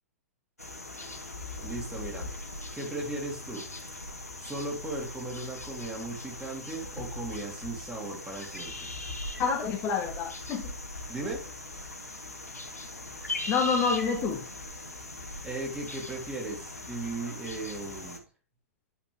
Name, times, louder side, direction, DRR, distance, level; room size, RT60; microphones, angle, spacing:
sound 1, 0.6-18.2, left 2 dB, 85° left, 1.6 m, -40 dB
voice 1, 1.5-2.3 2.7-3.7 4.4-8.9 11.1-11.4 15.4-18.2, right 2 dB, 10° right, 2.8 m, -37 dB
voice 2, 9.4-10.6 13.5-14.4, left 5 dB, 30° left, 1.5 m, -27 dB
10.5 x 5.2 x 3.4 m
figure-of-eight pair, 105°, 8 cm